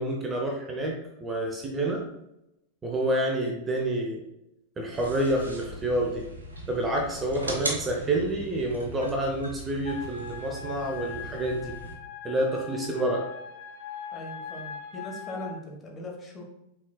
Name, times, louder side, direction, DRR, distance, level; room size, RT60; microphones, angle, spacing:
voice 1, 0.0-2.0 2.8-4.2 4.8-6.2 6.7-11.7 12.2-13.2, right 1 dB, 20° right, 0 dB, 0.7 m, -28 dB
sound 1, 4.9-11.9, right 2 dB, 80° right, 0.9 m, -38 dB
sound 2, 9.8-15.5, left 7 dB, 55° left, 0.6 m, -41 dB
voice 2, 14.1-16.4, left 1 dB, 20° left, -1 dB, 1.2 m, -40 dB
6.0 x 3.9 x 2.2 m, 0.86 s
figure-of-eight pair, 90°, 0 cm